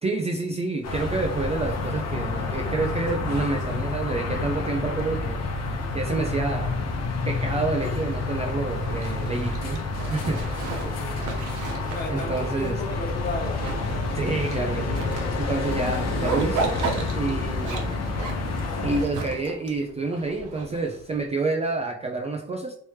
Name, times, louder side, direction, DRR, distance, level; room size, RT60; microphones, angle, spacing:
voice 1, 0.0-5.5 5.9-6.8 7.3-9.8 10.1-10.4 12.1-12.8 14.2-15.0 15.3-16.8 17.1-18.0 18.8-22.8, right 3 dB, 20° right, 0.4 m, -28 dB
sound 1, 0.6-18.9, left 5 dB, 85° left, 0.5 m, -41 dB
sound 2, 0.8-19.0, left 3 dB, 55° left, 0.9 m, -29 dB
Zipper (clothing), 8.7-21.2, right 4 dB, 75° right, 0.8 m, -35 dB
voice 2, 10.7-13.8, left 2 dB, 30° left, 1.2 m, -35 dB
3.1 x 2.9 x 3.2 m
cardioid pair, 90°, 30 cm